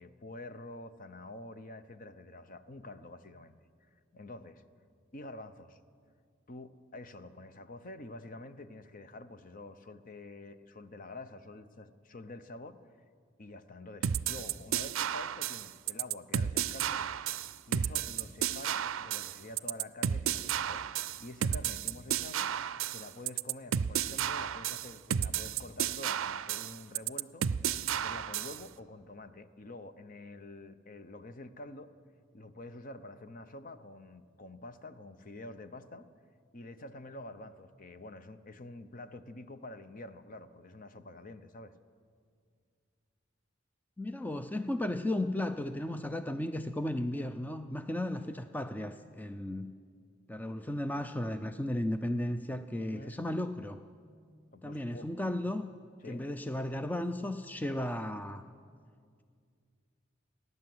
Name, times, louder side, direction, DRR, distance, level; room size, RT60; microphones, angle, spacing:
voice 1, 0.0-3.6 3.9-4.6 5.1-5.8 6.5-12.8 13.4-17.0 17.7-22.5 22.9-27.5 27.9-31.9 32.3-36.1 36.5-41.7 52.9-53.1 54.5-55.1 56.0-56.3, left 2 dB, 45° left, 11 dB, 0.8 m, -47 dB
sound 1, 14.0-28.6, right 9 dB, 90° right, 0.5 m, -32 dB
voice 2, 44.0-49.7 50.3-53.8 54.6-55.7 56.0-58.4, left 1 dB, 10° left, 8 dB, 0.4 m, -35 dB
30.0 x 11.0 x 7.8 m, 2.2 s
head